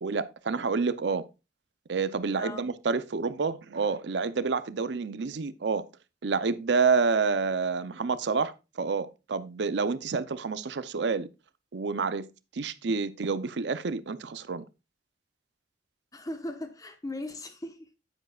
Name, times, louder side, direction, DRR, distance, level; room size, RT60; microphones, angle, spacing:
voice 1, 0.0-1.2 1.9-5.8 6.2-11.3 11.7-12.3 12.5-14.6, right 4 dB, 75° right, 0.6 m, -28 dB
voice 2, 2.4-2.7 16.1-17.9, left 1 dB, 20° left, 1.1 m, -38 dB
9.1 x 8.8 x 2.4 m
head